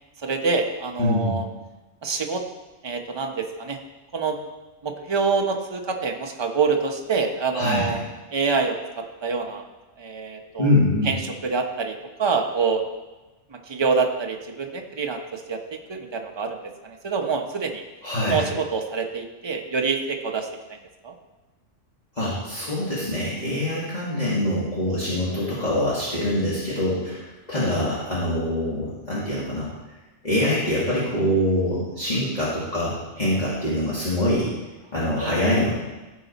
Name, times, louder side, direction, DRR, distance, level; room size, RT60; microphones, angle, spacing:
voice 1, 0.2-1.4 2.0-2.4 2.8-3.8 4.1-4.4 4.8-8.0 8.3-9.6 10.0-10.7 11.0-12.8 13.7-15.6 15.9-16.6 16.8-17.8 18.2-20.5 21.0-21.1 33.3-33.4, right 4 dB, 25° right, 3 dB, 0.7 m, -26 dB
voice 2, 1.0-1.4 7.5-7.9 10.6-11.1 18.0-18.4 22.1-29.7 30.2-34.5 34.9-35.7, left 1 dB, 35° left, -9 dB, 1.9 m, -24 dB
14.5 x 5.1 x 4.0 m, 1.1 s
omnidirectional pair, 1.3 m